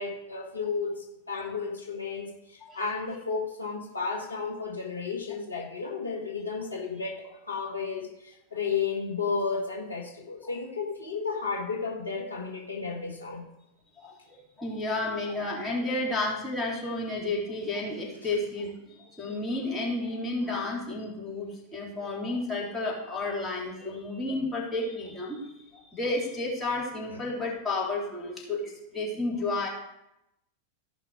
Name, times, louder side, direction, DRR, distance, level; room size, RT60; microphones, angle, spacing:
voice 1, 0.0-13.4 27.1-27.2, left 5 dB, 80° left, 0 dB, 1.6 m, -33 dB
voice 2, 14.0-29.7, left 2 dB, 10° left, -5 dB, 3.3 m, -32 dB
14.5 x 5.7 x 4.8 m, 0.86 s
figure-of-eight pair, 90°, 0 cm